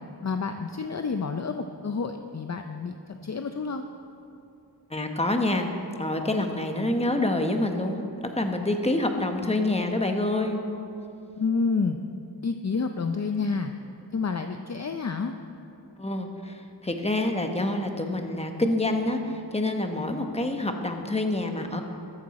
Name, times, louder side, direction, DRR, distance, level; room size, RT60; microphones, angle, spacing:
voice 1, 0.2-3.8 11.4-12.0 12.4-13.7 14.1-15.3, left 4 dB, 40° left, 6 dB, 0.6 m, -29 dB
voice 2, 4.9-5.7 6.0-8.0 8.3-10.6 16.0-21.8, left 2 dB, 15° left, 4 dB, 1.1 m, -27 dB
13.5 x 13.5 x 4.2 m, 2.7 s
wide cardioid pair, 80°, 41 cm